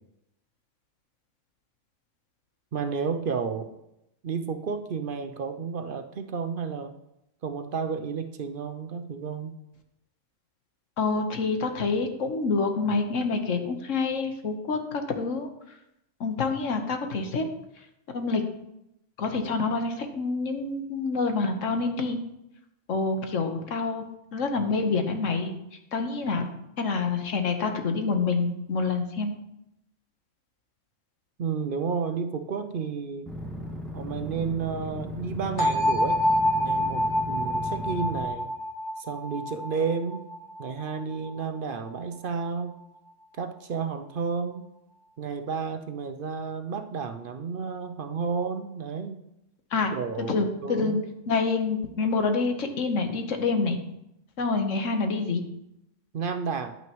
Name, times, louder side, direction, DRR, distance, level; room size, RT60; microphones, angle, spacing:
voice 1, 2.7-3.7 4.2-7.0 7.4-9.6 31.4-33.3 33.9-36.2 36.6-38.5 39.0-40.2 40.6-42.7 43.4-44.7 45.2-49.2 49.9-50.9 56.1-56.7, right 5 dB, 55° right, 8 dB, 0.7 m, -31 dB
voice 2, 11.0-15.5 16.2-17.4 18.1-18.4 19.2-22.2 22.9-24.0 24.3-25.5 25.9-26.5 26.8-29.3 49.7-49.9 50.2-53.8 54.4-55.4, left 4 dB, 85° left, 5 dB, 1.5 m, -27 dB
sound 1, 33.3-38.3, left 1 dB, ahead, 1.7 m, -36 dB
sound 2, 35.6-41.4, left 1 dB, 20° left, 1.0 m, -27 dB
10.5 x 8.9 x 3.1 m, 0.84 s
omnidirectional pair, 1.3 m